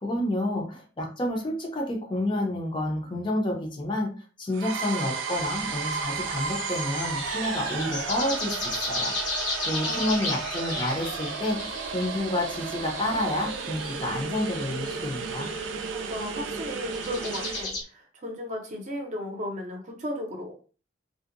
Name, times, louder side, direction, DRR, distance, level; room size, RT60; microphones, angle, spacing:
voice 1, 0.0-4.1 4.4-11.6 11.9-15.5, left 1 dB, 25° left, 1 dB, 0.5 m, -29 dB
sound 1, 4.5-17.7, right 5 dB, 80° right, 0.4 m, -33 dB
sound 2, 5.3-17.8, left 2 dB, 85° left, 1.0 m, -36 dB
voice 2, 15.9-20.5, left 1 dB, 40° right, 2 dB, 0.6 m, -35 dB
2.6 x 2.1 x 2.5 m, 0.38 s
head